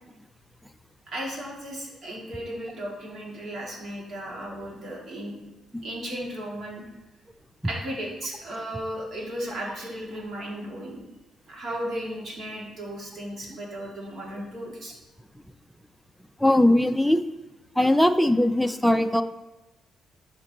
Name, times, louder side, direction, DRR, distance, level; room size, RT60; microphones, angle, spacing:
voice 1, 1.1-5.4 5.8-6.8 7.6-11.0 11.5-14.9, equal, 55° right, -3 dB, 2.5 m, -35 dB
voice 2, 16.4-17.2 17.8-19.2, left 1 dB, ahead, 8 dB, 0.5 m, -20 dB
10.5 x 5.2 x 3.0 m, 1.0 s
cardioid pair, 90°, 0 cm